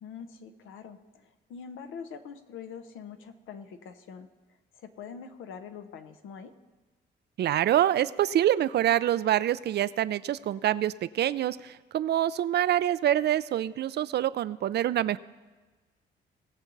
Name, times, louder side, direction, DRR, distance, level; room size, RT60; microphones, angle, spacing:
voice 1, 0.0-4.3 4.7-6.5, left 6 dB, 85° left, 9 dB, 0.9 m, -44 dB
voice 2, 7.4-15.2, right 12 dB, 60° right, 16 dB, 0.4 m, -26 dB
19.0 x 7.1 x 4.0 m, 1.3 s
cardioid pair, 90°, 20 cm